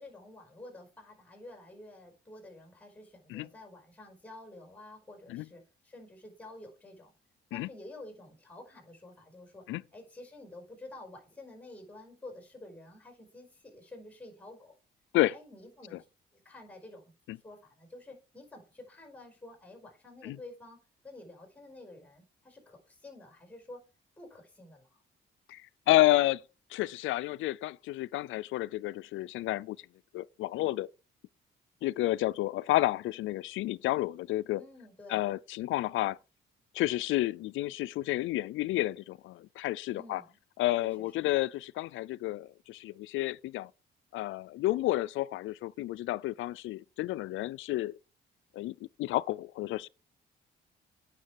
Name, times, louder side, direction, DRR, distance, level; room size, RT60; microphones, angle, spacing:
voice 1, 0.0-7.1 7.5-9.6 9.9-14.7 15.3-16.0 16.4-17.1 17.4-20.8 21.0-23.8 24.2-25.0 34.6-35.2 39.9-40.4 40.8-41.3, left 2 dB, 5° left, 5.0 m, -50 dB
voice 2, 25.5-26.4 26.7-29.8 30.1-30.9 31.8-34.6 35.1-36.2 36.7-40.2 40.6-43.7 44.1-47.9 48.5-49.9, left 16 dB, 80° left, 0.4 m, -30 dB
9.5 x 6.6 x 4.6 m
cardioid pair, 90°, 20 cm